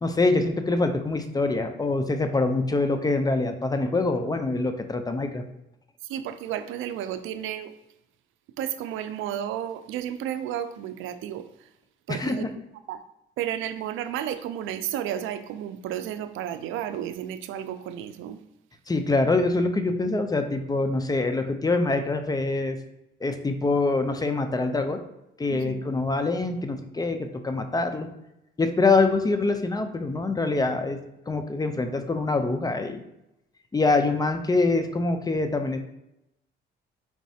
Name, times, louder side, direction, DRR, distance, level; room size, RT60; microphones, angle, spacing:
voice 1, 0.0-5.4 12.1-12.5 18.9-22.8 23.2-25.0 25.4-28.1 28.6-31.0 31.3-33.0 33.7-35.8, left 3 dB, 20° left, 7 dB, 0.5 m, -25 dB
voice 2, 6.1-7.7 8.6-11.5 12.1-12.6 12.9-13.0 13.4-18.4 25.5-25.8, right 10 dB, 90° right, 11 dB, 0.4 m, -32 dB
4.6 x 4.1 x 2.7 m, 0.85 s
cardioid pair, 90°, 20 cm